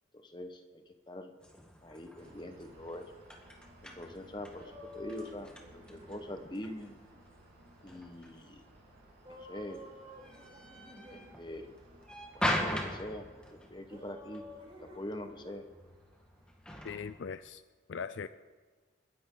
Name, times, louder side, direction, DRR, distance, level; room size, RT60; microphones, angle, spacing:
voice 1, 0.2-1.3 1.8-3.0 3.8-6.9 7.8-8.6 9.3-9.8 11.1-11.7 12.3-14.4 14.8-15.6, left 1 dB, 20° left, 6 dB, 1.1 m, -44 dB
sound 1, 1.4-17.3, left 1 dB, 5° left, 1.4 m, -42 dB
sound 2, 2.2-16.6, right 1 dB, 55° right, 3.3 m, -60 dB
sound 3, 4.5-6.4 9.2-11.4 13.9-15.6, left 1 dB, 25° right, 3.6 m, -51 dB
voice 2, 16.8-17.6 17.9-18.3, left 6 dB, 65° left, 13 dB, 0.4 m, -39 dB
29.5 x 10.5 x 3.9 m, 1.4 s
head